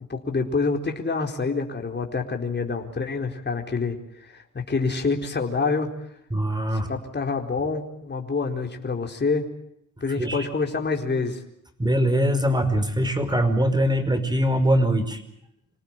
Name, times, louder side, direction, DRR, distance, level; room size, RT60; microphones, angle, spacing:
voice 1, 0.1-5.9 6.7-9.5 10.0-11.4, left 4 dB, 35° left, 2 dB, 4.4 m, -27 dB
voice 2, 6.3-6.9 10.2-10.5 11.8-15.2, equal, 15° right, 10 dB, 5.4 m, -22 dB
27.5 x 18.5 x 9.1 m, 0.77 s
cardioid pair, 85°, 31 cm